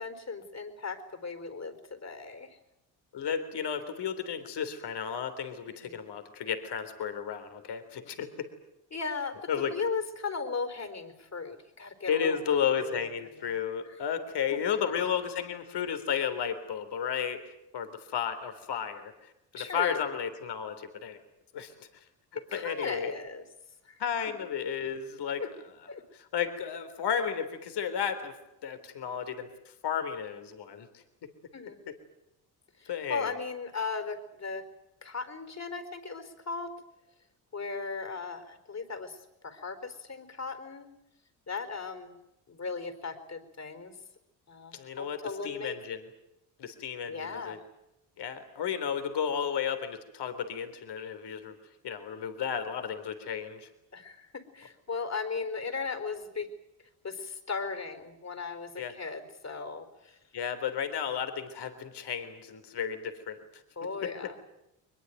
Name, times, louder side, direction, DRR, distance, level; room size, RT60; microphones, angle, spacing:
voice 1, 0.0-2.6 5.7-6.0 8.9-12.4 12.8-13.1 13.5-13.6 14.5-14.6 19.5-20.1 22.5-23.4 23.8-24.0 25.4-25.5 25.9-26.0 31.5-31.8 32.8-34.6 35.0-36.7 37.5-40.9 41.5-42.1 42.5-44.0 44.5-45.8 47.1-47.6 53.9-56.5 57.0-60.2 63.8-64.3, left 4 dB, 35° left, 9 dB, 4.5 m, -37 dB
voice 2, 3.1-8.5 9.5-9.7 12.0-21.2 21.5-22.1 22.5-23.1 24.0-25.4 26.1-28.3 28.6-31.3 32.9-33.3 44.7-46.0 46.6-47.6 48.2-51.6 51.8-53.7 58.8-58.9 60.3-63.6 64.0-64.1, left 7 dB, 60° left, 9 dB, 3.6 m, -33 dB
23.0 x 21.0 x 9.2 m, 0.87 s
hypercardioid pair, 55°, 46 cm